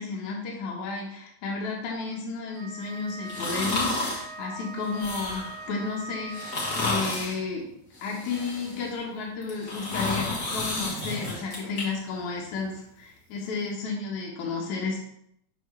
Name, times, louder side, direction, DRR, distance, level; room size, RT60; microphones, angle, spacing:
voice 1, 0.0-7.7 8.0-15.0, left 4 dB, 75° left, -2 dB, 2.4 m, -32 dB
Wind instrument woodwind instrument, 2.5-7.2, right 3 dB, 90° right, 2.4 m, -41 dB
sound 1, 3.3-4.3 4.8-5.6 6.3-7.4 7.9-8.9 9.4-11.8 12.2-12.3, left 2 dB, 35° left, 1.7 m, -31 dB
6.3 x 5.8 x 3.2 m, 0.72 s
omnidirectional pair, 3.4 m